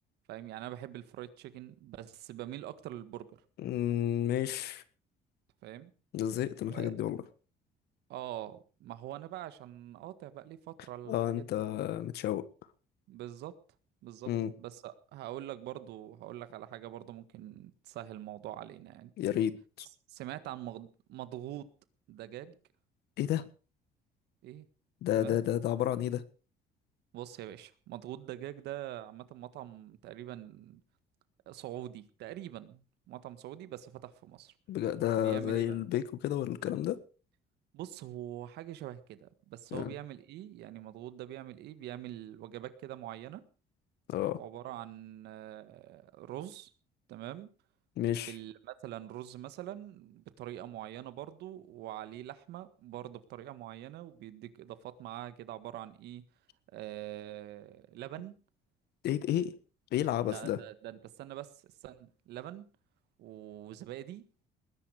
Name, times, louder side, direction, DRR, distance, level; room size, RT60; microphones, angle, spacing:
voice 1, 0.3-3.3 5.6-5.9 6.7-7.0 8.1-11.5 13.1-13.6 14.0-14.3 14.6-19.1 20.1-21.7 22.1-22.6 24.4-24.6 25.2-25.4 27.1-30.8 31.4-34.5 35.2-35.9 37.7-43.4 44.4-46.7 47.1-47.5 48.0-56.2 56.7-58.3 60.2-62.7 63.2-64.2, right 13 dB, 80° right, 13 dB, 1.7 m, -44 dB
voice 2, 3.6-4.8 6.1-7.2 11.1-12.4 14.3-14.5 19.2-19.9 23.2-23.5 25.0-26.2 34.7-37.0 39.7-39.9 44.1-44.4 48.0-48.3 59.0-59.5 59.9-60.6, left 11 dB, 75° left, 15 dB, 1.5 m, -31 dB
20.0 x 11.0 x 5.0 m, 0.37 s
cardioid pair, 110°, 17 cm